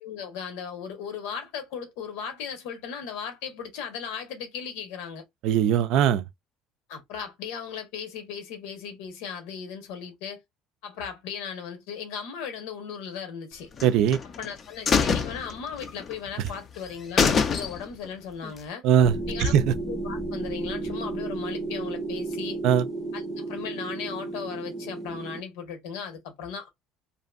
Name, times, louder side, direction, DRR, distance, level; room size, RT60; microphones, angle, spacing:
voice 1, 0.0-5.2 6.9-10.4 10.8-13.7 14.2-18.8 19.3-19.5 19.9-22.6 23.1-26.7, left 7 dB, 85° left, 1.0 m, -37 dB
voice 2, 5.4-6.2 13.8-14.2 18.8-19.1 19.4-19.7 22.6-22.8, right 9 dB, 60° right, 0.3 m, -20 dB
sound 1, 13.8-14.5 14.9-16.1 16.5-16.6 16.9-17.0 17.2-18.1 18.4-18.5, left 6 dB, 30° left, 0.4 m, -24 dB
sound 2, 19.0-25.4, right 2 dB, 5° right, 0.7 m, -33 dB
2.9 x 2.6 x 2.4 m
cardioid pair, 165°, 0 cm